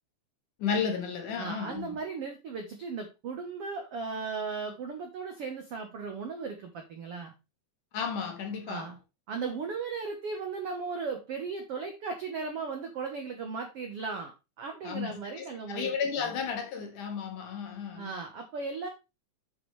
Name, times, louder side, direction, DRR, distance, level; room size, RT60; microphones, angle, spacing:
voice 1, 0.6-1.9 7.9-8.9 14.8-15.1 15.4-18.1, left 6 dB, 60° left, 3.0 m, -33 dB
voice 2, 1.4-7.3 8.7-9.0 9.3-14.3 14.6-15.9 16.2-16.4 18.0-18.9, right 4 dB, 65° right, 1.4 m, -36 dB
8.0 x 7.1 x 3.3 m
omnidirectional pair, 4.3 m